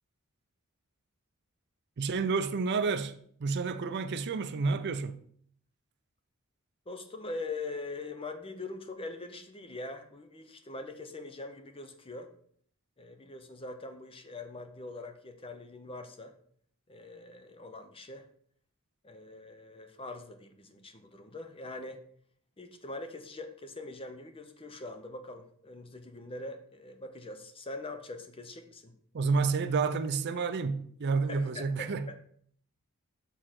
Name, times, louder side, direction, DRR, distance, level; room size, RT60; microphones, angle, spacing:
voice 1, 2.0-5.2 29.1-32.2, right 4 dB, 50° right, 0.4 m, -30 dB
voice 2, 6.9-12.3 13.0-16.4 16.9-18.3 19.0-22.0 22.6-28.9 31.2-32.2, left 2 dB, 25° left, 0.7 m, -43 dB
6.5 x 3.8 x 5.9 m
head